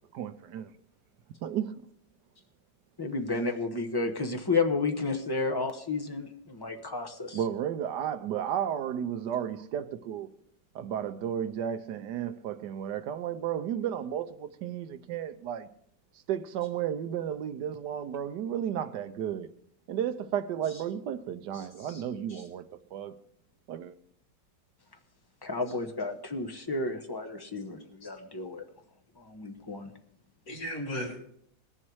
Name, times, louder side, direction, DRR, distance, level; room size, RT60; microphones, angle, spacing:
voice 1, 0.1-0.7 1.4-1.7 7.3-10.3 10.7-15.7 16.3-19.5 19.9-22.6 22.9-23.2 23.7-23.9, right 9 dB, 75° right, 1.3 m, -33 dB
voice 2, 3.0-7.4 25.4-28.6 29.2-29.9, left 3 dB, 20° left, 0.8 m, -32 dB
voice 3, 21.5-22.0 22.3-22.4 28.0-28.1 30.5-31.2, equal, 50° left, 3.6 m, -37 dB
20.5 x 7.5 x 4.7 m
omnidirectional pair, 2.0 m